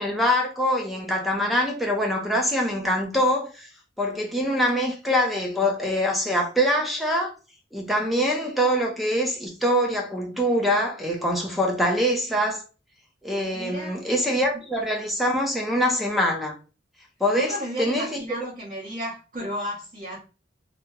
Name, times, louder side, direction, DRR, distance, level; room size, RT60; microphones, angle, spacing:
voice 1, 0.0-3.7 4.0-7.3 7.7-12.6 13.2-16.6 17.2-18.2, equal, ahead, 0.5 m, -24 dB
voice 2, 13.5-14.0 17.4-20.2, equal, 40° right, 0.9 m, -33 dB
2.9 x 2.0 x 3.6 m
head